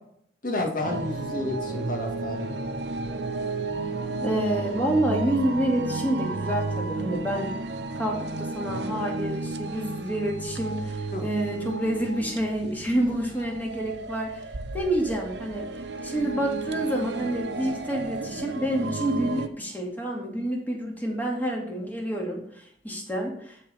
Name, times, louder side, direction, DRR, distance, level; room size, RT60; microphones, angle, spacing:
voice 1, 0.4-2.5 11.1-11.3, left 2 dB, 45° left, 1 dB, 2.0 m, -30 dB
sound 1, 0.8-19.5, right 3 dB, 65° right, 0.8 m, -33 dB
voice 2, 4.2-7.5 8.0-14.4 14.7-15.7 16.0-23.7, right 1 dB, 10° left, -1 dB, 2.2 m, -28 dB
13.0 x 4.4 x 5.5 m, 0.67 s
head